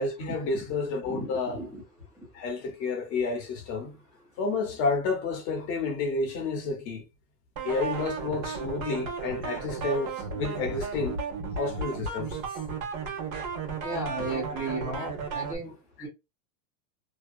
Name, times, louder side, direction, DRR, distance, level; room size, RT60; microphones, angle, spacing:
voice 1, 0.0-1.6 2.3-3.9 4.4-7.0 7.6-11.2 11.6-12.4, left 3 dB, 35° left, 0.7 m, -30 dB
voice 2, 1.1-1.8 13.8-15.8 16.0-16.1, right 2 dB, 10° right, 0.6 m, -34 dB
sound 1, 7.6-15.6, right 5 dB, 65° right, 1.1 m, -34 dB
2.6 x 2.2 x 2.3 m
supercardioid pair, 165°, 43 cm